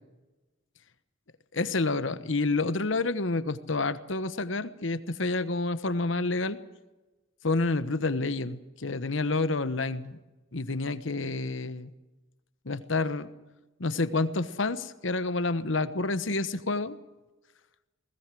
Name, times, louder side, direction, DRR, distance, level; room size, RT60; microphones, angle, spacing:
voice 1, 1.5-6.6 7.4-10.2 10.5-11.9 12.6-13.3 13.8-17.0, left 3 dB, 70° left, 13 dB, 1.2 m, -29 dB
21.0 x 18.0 x 7.7 m, 1.1 s
head